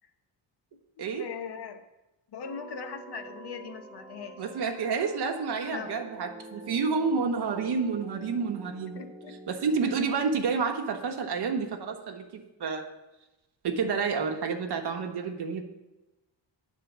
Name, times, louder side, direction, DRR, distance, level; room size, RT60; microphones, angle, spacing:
voice 1, 1.0-1.8 2.3-4.4 5.7-6.0 8.9-9.3, left 6 dB, 55° left, 8 dB, 0.9 m, -40 dB
sound 1, 2.4-10.0, right 1 dB, 10° right, 0.5 m, -47 dB
voice 2, 4.4-9.0 9.5-12.9 13.6-15.6, right 5 dB, 55° right, 3 dB, 1.1 m, -29 dB
9.8 x 4.4 x 7.2 m, 1.0 s
wide cardioid pair, 180°, 47 cm